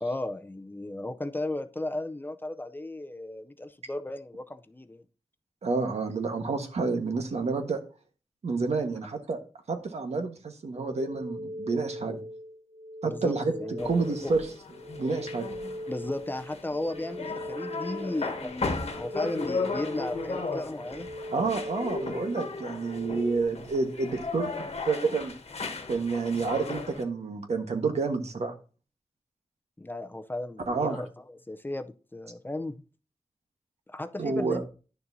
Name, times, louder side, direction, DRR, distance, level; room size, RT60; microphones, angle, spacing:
voice 1, 0.0-5.0 13.0-13.9 14.2-14.3 15.9-18.7 19.0-21.1 29.8-32.8 33.9-34.6, left 1 dB, 20° left, 0.5 m, -35 dB
voice 2, 5.6-7.8 8.4-9.4 9.7-12.2 13.0-13.5 13.8-14.5 15.0-15.5 21.3-24.5 24.9-25.3 25.9-28.5 30.7-31.0 34.2-34.6, right 4 dB, 80° right, 1.3 m, -29 dB
sound 1, 10.7-23.4, equal, 45° right, 1.0 m, -40 dB
sound 2, 13.8-27.0, left 3 dB, 70° left, 1.3 m, -36 dB
10.5 x 6.7 x 2.6 m
wide cardioid pair, 105°, 11 cm